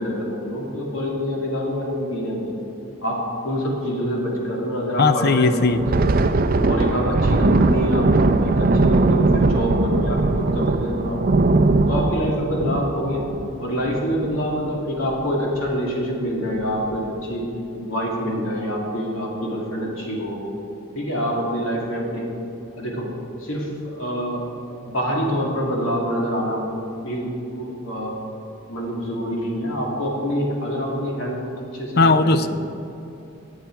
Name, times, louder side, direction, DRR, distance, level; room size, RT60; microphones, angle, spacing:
voice 1, 0.0-2.5 3.0-6.0 6.6-11.2 11.9-13.2 13.6-17.5 17.8-20.5 20.9-22.3 22.8-23.1 23.4-24.4 24.7-26.7 27.0-27.3 27.5-28.1 28.7-31.4 31.7-32.5, equal, 80° left, -2 dB, 2.6 m, -26 dB
voice 2, 5.0-5.8 32.0-32.5, left 3 dB, 50° left, 11 dB, 0.5 m, -17 dB
Thunder, 5.7-14.7 15.1-15.3 15.7-15.9 16.5-17.0, right 2 dB, 45° right, 0.5 m, -20 dB
18.5 x 7.8 x 4.6 m, 2.7 s
head